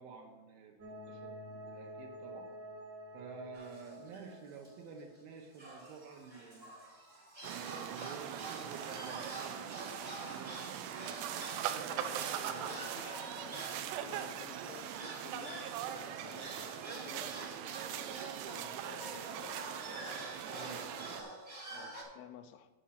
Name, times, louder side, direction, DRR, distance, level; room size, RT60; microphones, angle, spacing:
voice 1, 0.0-2.5 3.1-6.7 7.5-12.9 20.3-21.9, right 5 dB, 75° right, 2 dB, 2.4 m, -51 dB
sound 1, 0.8-5.5, equal, 50° right, 1.3 m, -49 dB
sound 2, 3.5-4.3 4.6-4.7 5.0-5.2 5.5-22.0, right 1 dB, 30° right, 0.7 m, -48 dB
sound 3, 7.4-21.2, right 10 dB, 90° right, 2.7 m, -41 dB
voice 2, 11.9-19.6 21.7-22.7, left 9 dB, 80° left, 9 dB, 2.5 m, -53 dB
8.7 x 6.3 x 5.7 m, 1.2 s
omnidirectional pair, 4.9 m